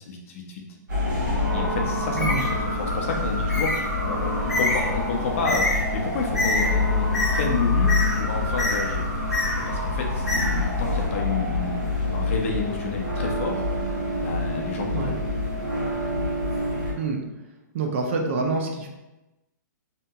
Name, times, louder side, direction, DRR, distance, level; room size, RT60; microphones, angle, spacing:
voice 1, 0.1-0.6 1.5-2.4 2.8-9.1 9.7-11.8 12.1-13.7 14.2-15.2, left 4 dB, 45° left, 1 dB, 0.5 m, -30 dB
sound 1, 0.9-16.9, left 2 dB, 80° right, 1.1 m, -26 dB
Bird, 2.0-11.1, left 1 dB, ahead, 1.3 m, -28 dB
voice 2, 17.7-18.9, right 4 dB, 40° right, 2 dB, 0.4 m, -26 dB
2.8 x 2.6 x 2.3 m, 1.0 s
hypercardioid pair, 165°, 10 cm